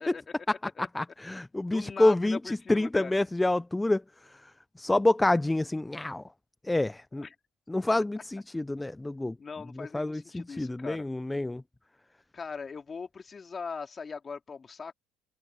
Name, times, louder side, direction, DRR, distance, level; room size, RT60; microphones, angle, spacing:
voice 1, 0.0-0.9 1.3-1.4 1.7-3.1 7.2-7.4 8.0-8.1 9.4-11.0 12.3-14.9, left 5 dB, 30° left, 2.6 m, -40 dB
voice 2, 0.9-4.0 4.8-6.2 6.7-7.3 7.7-9.3 9.9-11.6, left 2 dB, 10° left, 0.5 m, -27 dB
supercardioid pair, 90°, 0 cm